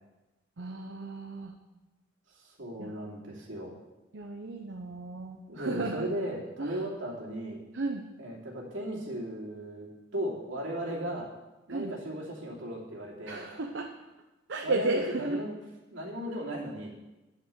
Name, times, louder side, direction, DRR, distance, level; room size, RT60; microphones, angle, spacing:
voice 1, 0.6-1.5 2.8-3.0 4.1-6.1 6.6-6.8 7.7-8.1 11.7-11.9 13.3-13.9 14.5-15.4, right 2 dB, 70° right, 3 dB, 0.8 m, -34 dB
voice 2, 2.3-3.7 5.5-7.6 8.2-11.3 11.7-13.5 14.6-15.6 15.9-16.9, right 1 dB, 85° right, -3 dB, 2.7 m, -36 dB
10.5 x 6.7 x 6.7 m, 1.1 s
head